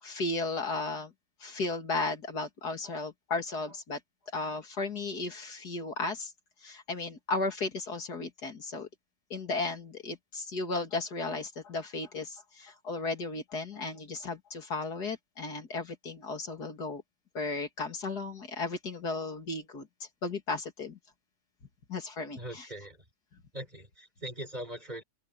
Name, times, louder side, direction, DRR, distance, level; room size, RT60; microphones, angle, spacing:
voice 1, 0.0-1.1 1.4-4.0 4.3-6.3 6.6-8.9 9.3-17.0 17.3-19.9 20.2-21.0 21.9-22.7, left 3 dB, 75° left, 3.1 m, -35 dB
voice 2, 22.4-23.0 23.5-25.0, right 1 dB, 25° right, 5.7 m, -41 dB
open air
omnidirectional pair, 1.7 m